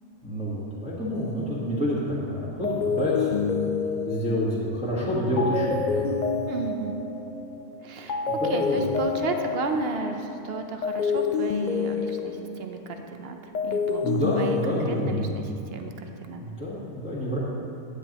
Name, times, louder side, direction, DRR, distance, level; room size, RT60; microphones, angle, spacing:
voice 1, 0.2-3.6 4.0-6.1 8.4-8.8 14.0-15.3 16.4-17.4, equal, 5° right, -9 dB, 1.4 m, -28 dB
sound 1, 1.1-2.1 2.6-7.8 8.1-13.1 13.4-15.5, left 5 dB, 80° left, 0.4 m, -29 dB
voice 2, 6.5-7.0 7.8-16.4, right 4 dB, 55° right, 5 dB, 0.8 m, -33 dB
10.0 x 9.5 x 3.0 m, 2.6 s
omnidirectional pair, 1.4 m